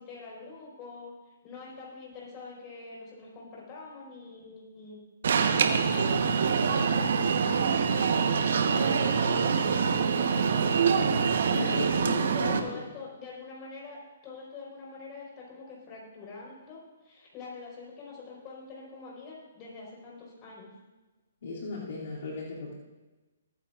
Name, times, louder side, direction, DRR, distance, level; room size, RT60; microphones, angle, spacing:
voice 1, 0.0-5.0 5.3-9.9 10.2-10.7 11.6-20.7, left 4 dB, 30° left, -4 dB, 4.5 m, -45 dB
Alarm, 5.2-12.6, right 6 dB, 65° right, 1.1 m, -25 dB
voice 2, 11.5-12.1 12.4-12.8 21.4-22.7, left 2 dB, 65° left, -6 dB, 2.7 m, -36 dB
20.5 x 9.4 x 2.5 m, 1.2 s
hypercardioid pair, 145°, 0 cm